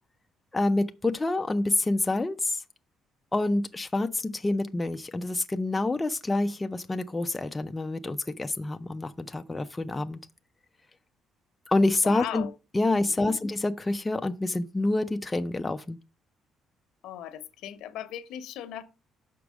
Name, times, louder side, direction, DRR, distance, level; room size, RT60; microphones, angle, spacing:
voice 1, 0.5-2.6 3.3-10.2 11.7-12.5 12.7-16.0, left 2 dB, 15° left, 0.4 m, -27 dB
voice 2, 12.0-12.5 13.0-13.3 17.0-18.8, left 10 dB, 90° left, 0.9 m, -38 dB
6.0 x 4.7 x 6.2 m
cardioid pair, 160°, 0 cm